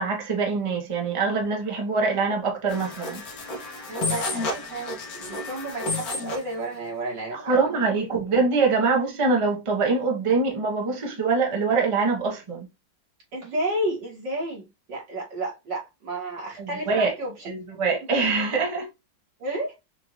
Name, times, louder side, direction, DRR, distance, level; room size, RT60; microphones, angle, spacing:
voice 1, 0.0-3.2 7.3-12.7 16.6-17.1 17.4-18.9, right 4 dB, 20° right, 0.9 m, -24 dB
sound 1, 2.7-6.5, left 2 dB, 55° left, 1.6 m, -31 dB
voice 2, 3.9-7.8 13.3-17.4 18.0-18.1 19.4-19.7, right 1 dB, 70° right, 2.6 m, -32 dB
5.8 x 2.7 x 3.1 m
omnidirectional pair, 2.0 m